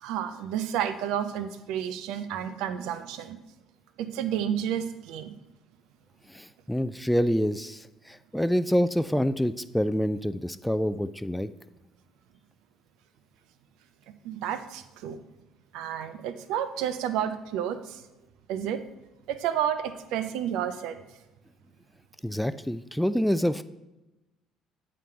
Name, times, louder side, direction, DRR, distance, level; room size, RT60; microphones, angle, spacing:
voice 1, 0.0-3.4 4.0-5.3 14.2-15.2 15.7-18.0 18.5-18.8 19.3-21.0, right 9 dB, 70° right, 11 dB, 0.5 m, -31 dB
voice 2, 6.3-11.5 22.2-23.6, equal, 5° left, 13 dB, 0.4 m, -27 dB
9.1 x 3.9 x 4.7 m, 1.0 s
hypercardioid pair, 60°, 0 cm